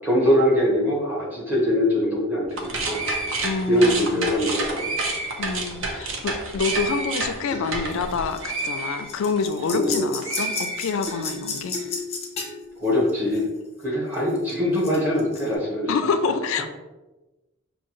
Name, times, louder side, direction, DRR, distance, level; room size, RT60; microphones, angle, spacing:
voice 1, 0.0-3.0 3.7-4.9 9.7-10.1 12.8-13.5 13.8-15.9, left 1 dB, 10° right, -4 dB, 1.1 m, -22 dB
sound 1, 2.5-9.9 10.2-11.4, right 2 dB, 65° right, 0.7 m, -29 dB
voice 2, 3.4-4.3 5.4-11.7 15.9-16.7, left 5 dB, 65° left, 9 dB, 0.3 m, -27 dB
sound 2, 7.5-8.8 9.1-13.6 13.9-15.4, left 3 dB, 30° left, 0.7 m, -33 dB
5.6 x 2.7 x 2.9 m, 1.1 s
head